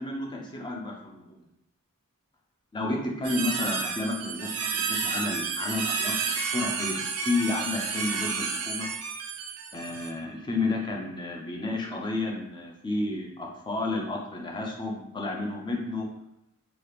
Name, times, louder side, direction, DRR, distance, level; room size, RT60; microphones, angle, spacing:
voice 1, 0.0-1.5 2.7-8.9 9.7-16.1, left 2 dB, 20° left, 0 dB, 0.5 m, -31 dB
sound 1, 3.2-10.1, right 5 dB, 80° right, 0.4 m, -31 dB
2.9 x 2.4 x 3.3 m, 0.84 s
head